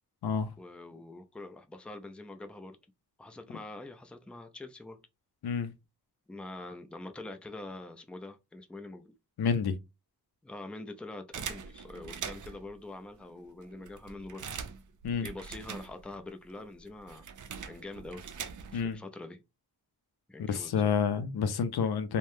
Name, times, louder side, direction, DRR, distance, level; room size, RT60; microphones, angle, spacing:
voice 1, 0.6-2.8 3.2-5.0 6.3-9.1 10.4-14.4 15.2-17.3 17.7-18.3 18.7-19.4 20.3-21.0, left 2 dB, 5° left, 0.4 m, -44 dB
voice 2, 9.4-9.8 15.0-15.3 18.7-19.0 20.4-22.2, left 6 dB, 75° left, 0.6 m, -29 dB
sound 1, 11.3-12.7 13.3-13.4 13.6-16.3 16.5-18.9, right 6 dB, 50° right, 0.5 m, -42 dB
3.2 x 2.2 x 2.6 m
cardioid pair, 75°, 39 cm